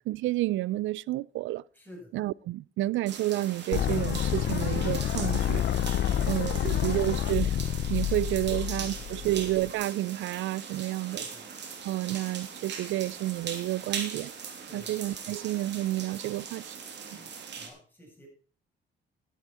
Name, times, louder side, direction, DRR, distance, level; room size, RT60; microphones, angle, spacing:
voice 1, 0.1-1.6 2.1-5.6 6.3-7.6 7.9-11.2 11.8-14.3 14.7-16.8, right 16 dB, 80° right, 0.4 m, -30 dB
voice 2, 1.7-2.1 5.9-6.8 8.0-8.1 8.8-9.3 11.0-11.5 14.6-14.9 17.1-18.3, equal, 10° left, 7.9 m, -50 dB
sound 1, 3.1-17.7, right 6 dB, 60° right, 2.9 m, -40 dB
sound 2, 3.7-9.7, left 10 dB, 70° left, 0.9 m, -29 dB
12.0 x 11.0 x 4.2 m
cardioid pair, 90°, 20 cm